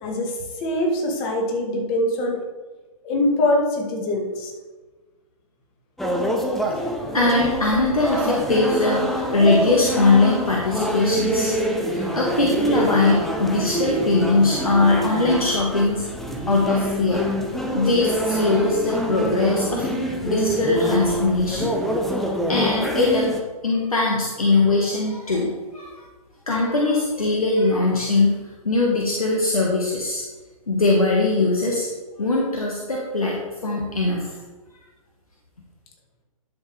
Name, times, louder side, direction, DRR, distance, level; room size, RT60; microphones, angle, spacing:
voice 1, 0.0-2.4 3.0-4.5, left 1 dB, 25° left, 2 dB, 1.7 m, -23 dB
sound 1, 6.0-23.4, right 1 dB, ahead, 0.6 m, -25 dB
voice 2, 7.1-11.5 11.9-16.0 16.5-17.2 17.7-19.9 20.2-21.7 22.5-23.3 23.6-26.0 26.5-28.4 28.6-30.2 30.7-31.9 32.2-34.4, left 3 dB, 70° left, -2 dB, 1.5 m, -21 dB
11.5 x 6.3 x 3.3 m, 1.3 s
figure-of-eight pair, 125°, 19 cm